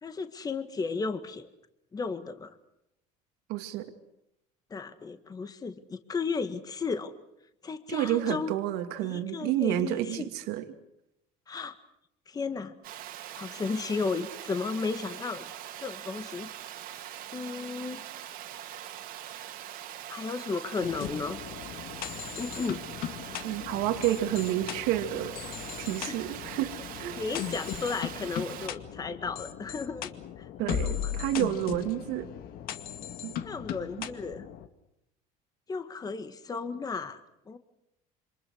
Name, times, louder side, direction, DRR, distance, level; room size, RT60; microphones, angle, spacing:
voice 1, 0.0-1.5 1.9-2.6 4.7-7.1 7.6-8.5 9.0-10.2 11.5-11.8 12.3-12.8 13.3-15.5 15.8-16.5 17.3-18.0 20.1-21.4 22.4-22.8 26.1-26.2 27.2-30.1 30.4-31.1 33.4-34.5 35.7-37.2 37.5-37.6, left 4 dB, 20° left, 9 dB, 1.8 m, -34 dB
voice 2, 3.5-3.9 7.9-10.7 23.4-25.3 25.8-26.7 27.0-27.2 30.6-32.3 33.2-33.4 34.0-34.1, right 13 dB, 75° right, 7 dB, 2.4 m, -30 dB
Water, 12.8-28.7, right 12 dB, 60° right, 2.7 m, -42 dB
sound 1, 20.8-34.7, left 10 dB, 60° left, 2.2 m, -38 dB
28.0 x 26.5 x 6.4 m, 0.83 s
cardioid pair, 125°, 17 cm